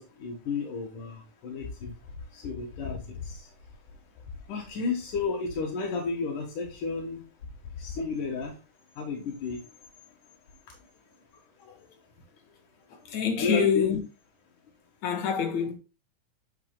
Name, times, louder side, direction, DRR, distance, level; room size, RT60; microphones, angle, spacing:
voice 1, 0.0-1.9 2.3-3.4 4.5-7.2 7.8-8.5 9.0-9.6 13.4-13.9, left 4 dB, 85° left, 3.1 m, -32 dB
voice 2, 13.1-14.0 15.0-15.7, left 8 dB, 65° left, 2.9 m, -26 dB
8.2 x 6.7 x 2.3 m
omnidirectional pair, 3.5 m